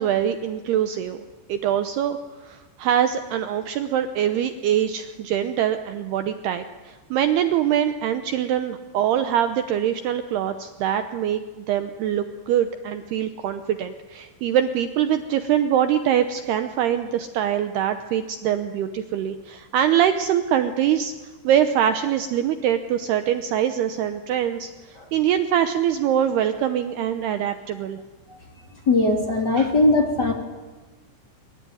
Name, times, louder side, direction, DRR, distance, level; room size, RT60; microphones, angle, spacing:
voice 1, 0.0-21.1 21.4-28.0 29.6-29.7, right 10 dB, 90° right, 9 dB, 2.2 m, -23 dB
voice 2, 28.9-30.3, left 2 dB, 25° left, 3 dB, 2.6 m, -19 dB
24.5 x 23.0 x 9.5 m, 1.3 s
omnidirectional pair, 6.0 m